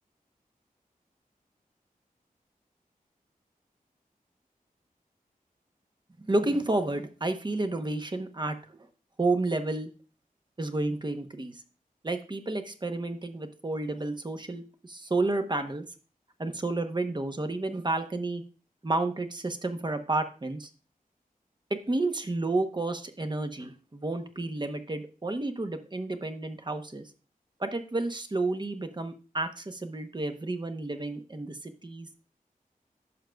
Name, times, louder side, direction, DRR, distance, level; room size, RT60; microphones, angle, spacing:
voice 1, 6.3-8.6 9.2-9.9 10.6-11.6 12.0-15.8 16.4-18.4 18.8-20.7 21.7-27.1 27.6-32.1, right 2 dB, 30° right, 7 dB, 0.9 m, -31 dB
11.0 x 6.4 x 2.3 m, 0.37 s
wide cardioid pair, 80°, 15 cm